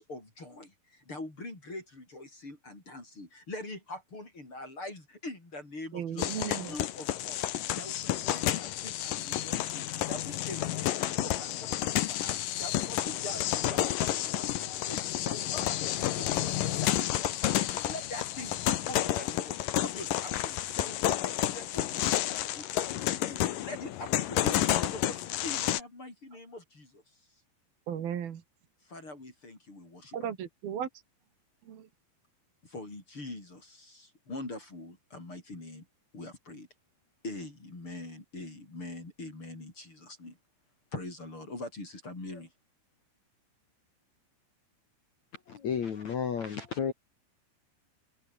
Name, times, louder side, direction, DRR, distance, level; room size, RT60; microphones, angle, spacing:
voice 1, 0.0-7.5 7.8-27.0 28.8-30.3 32.6-35.9 36.1-36.7 37.2-40.4 40.9-42.5, left 2 dB, 30° left, 7.1 m, -44 dB
voice 2, 5.9-6.8 27.9-28.4 30.1-30.9 31.7-31.9, right 9 dB, 60° right, 3.9 m, -35 dB
sound 1, 6.2-25.8, left 13 dB, 65° left, 2.3 m, -30 dB
voice 3, 45.5-46.9, left 7 dB, 50° left, 2.7 m, -32 dB
omnidirectional pair, 5.1 m